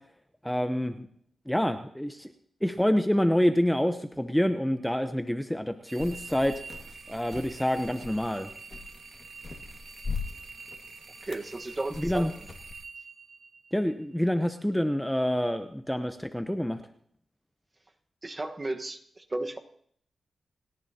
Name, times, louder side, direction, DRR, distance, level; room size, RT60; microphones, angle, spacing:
voice 1, 0.4-1.1 1.5-2.3 2.6-6.5 7.1-8.5 12.0-12.3 13.7-16.8, equal, 5° left, 7 dB, 0.8 m, -27 dB
sound 1, 5.9-12.7, left 4 dB, 50° left, 1.7 m, -41 dB
sound 2, 5.9-14.0, right 4 dB, 55° right, 1.4 m, -47 dB
voice 2, 11.2-12.3 18.2-19.6, right 2 dB, 30° right, 5 dB, 1.3 m, -34 dB
29.5 x 10.5 x 2.9 m, 0.63 s
wide cardioid pair, 95°, 0 cm